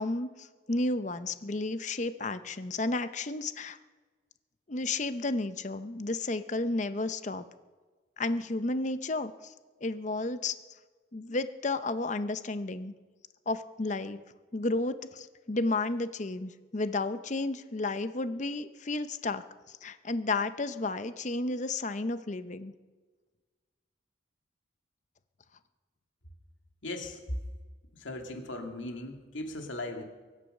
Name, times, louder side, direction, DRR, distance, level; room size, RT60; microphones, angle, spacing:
voice 1, 0.0-3.8 4.7-7.4 8.2-9.3 9.8-10.5 11.1-12.9 13.5-14.2 14.5-19.4 19.8-22.7, left 2 dB, 40° left, 12 dB, 0.7 m, -32 dB
voice 2, 26.8-27.2 28.0-30.0, left 2 dB, 85° left, 4 dB, 2.3 m, -38 dB
23.5 x 8.2 x 6.6 m, 1.4 s
head